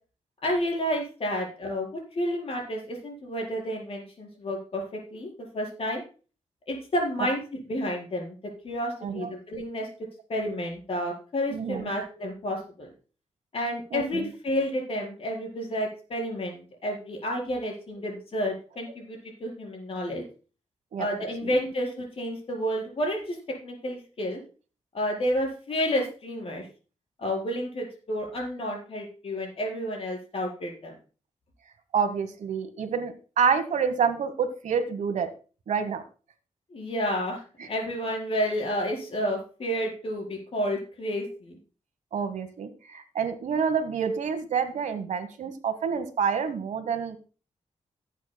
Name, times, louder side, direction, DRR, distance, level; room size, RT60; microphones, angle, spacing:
voice 1, 0.4-4.8 5.1-6.0 6.7-8.4 8.6-9.9 10.3-12.9 13.5-20.2 21.0-23.4 23.6-24.4 24.9-26.6 27.2-30.9 36.7-41.6, equal, 50° left, -1 dB, 4.5 m, -30 dB
voice 2, 9.0-9.3 11.5-11.9 13.9-14.3 20.9-21.1 31.9-35.3 35.7-36.0 37.6-37.7 42.1-47.2, right 6 dB, 80° right, 10 dB, 1.2 m, -28 dB
17.5 x 8.3 x 2.2 m, 0.36 s
wide cardioid pair, 125°, 12 cm